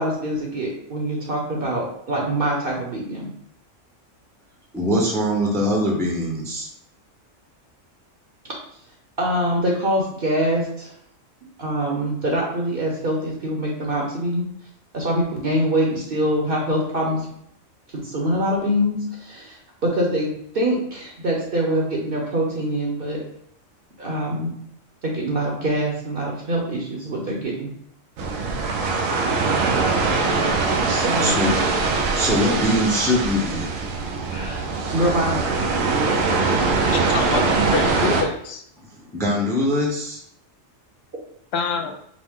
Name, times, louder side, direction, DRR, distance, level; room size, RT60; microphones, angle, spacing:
voice 1, 0.0-3.3 8.4-8.5 9.2-10.9 11.6-14.4 14.9-17.3 17.9-19.6 19.8-20.3 20.5-23.2 24.0-24.5 25.0-27.7 30.8-31.4 34.3-35.7, right 1 dB, 50° right, -1 dB, 0.9 m, -24 dB
voice 2, 4.7-6.7 31.2-31.6 32.2-33.7 39.1-40.2, equal, 5° left, -2 dB, 0.6 m, -22 dB
sound 1, 28.2-38.2, right 3 dB, 85° right, 1.0 m, -22 dB
voice 3, 36.9-38.6 41.5-41.9, left 6 dB, 65° left, 5 dB, 0.7 m, -26 dB
5.0 x 2.1 x 3.6 m, 0.71 s
omnidirectional pair, 1.3 m